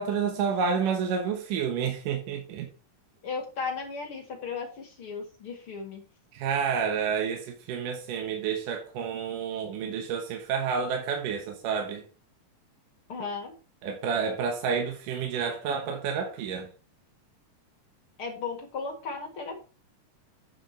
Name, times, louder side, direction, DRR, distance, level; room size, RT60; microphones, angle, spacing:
voice 1, 0.0-2.7 6.3-12.0 13.8-16.7, right 6 dB, 80° right, 2.7 m, -29 dB
voice 2, 3.2-6.0 13.1-13.5 18.2-19.6, left 4 dB, 50° left, 2.2 m, -35 dB
8.6 x 5.9 x 4.4 m
omnidirectional pair, 3.8 m